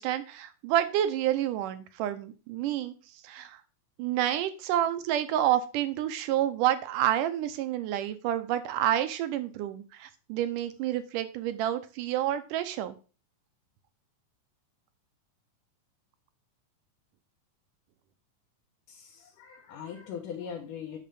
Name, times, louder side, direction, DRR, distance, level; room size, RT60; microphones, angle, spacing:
voice 1, 0.0-2.9 3.2-3.6 4.0-13.0, right 11 dB, 85° right, 11 dB, 2.4 m, -29 dB
voice 2, 18.9-21.0, left 7 dB, 80° left, -1 dB, 2.8 m, -40 dB
9.0 x 3.8 x 6.9 m, 0.34 s
omnidirectional pair, 3.6 m